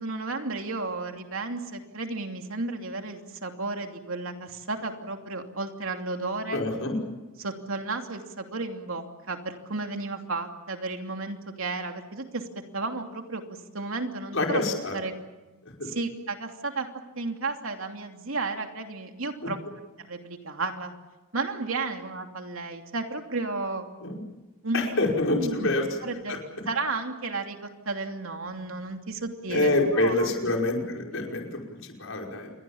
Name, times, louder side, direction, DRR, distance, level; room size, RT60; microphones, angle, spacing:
voice 1, 0.0-6.6 7.4-12.4 12.7-13.4 13.7-14.6 14.9-15.1 15.8-16.9 17.2-19.6 20.0-20.9 21.3-23.9 24.6-25.7 26.0-26.4 26.7-30.3, right 3 dB, 75° right, 4 dB, 2.9 m, -33 dB
voice 2, 6.5-7.0 14.3-15.0 15.8-15.9 24.0-24.2 24.7-25.9 26.3-26.4 29.5-32.5, left 2 dB, 70° left, 1 dB, 5.4 m, -26 dB
28.5 x 23.0 x 7.2 m, 1.1 s
head